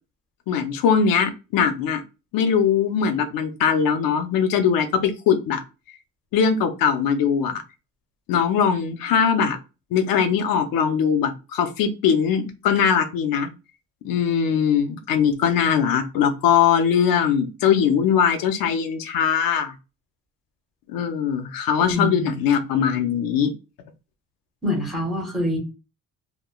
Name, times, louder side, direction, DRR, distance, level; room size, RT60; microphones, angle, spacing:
voice 1, 0.5-2.0 2.3-5.6 6.3-7.6 8.3-9.6 9.9-13.5 14.0-19.7 20.9-23.5, left 7 dB, 80° left, 7 dB, 0.5 m, -21 dB
voice 2, 21.9-22.4 24.6-25.6, left 1 dB, ahead, -1 dB, 1.0 m, -25 dB
3.0 x 2.2 x 2.2 m, 0.29 s
cardioid pair, 170°, 34 cm